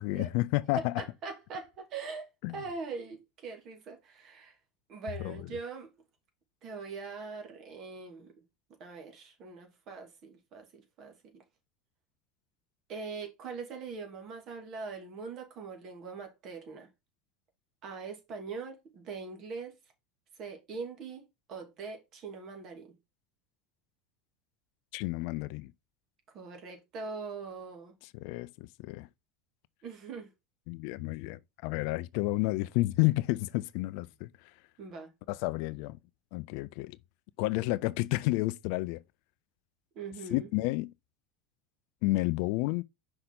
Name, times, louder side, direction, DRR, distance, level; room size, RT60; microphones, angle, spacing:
voice 1, 0.0-0.9 2.4-2.6 5.2-5.4 24.9-25.7 28.1-29.1 30.7-34.3 35.3-36.0 36.3-37.0 37.4-39.0 40.3-40.9 42.0-42.8, left 20 dB, 60° left, 0.4 m, -30 dB
voice 2, 0.7-4.6 4.9-5.9 6.6-8.3 8.8-11.4 12.9-16.9 17.8-19.7 20.4-21.2 21.5-22.9 26.3-27.9 29.8-30.3 34.8-35.1 39.9-40.5, right 4 dB, 45° right, 2.6 m, -42 dB
5.8 x 5.4 x 3.7 m
hypercardioid pair, 80°, 0 cm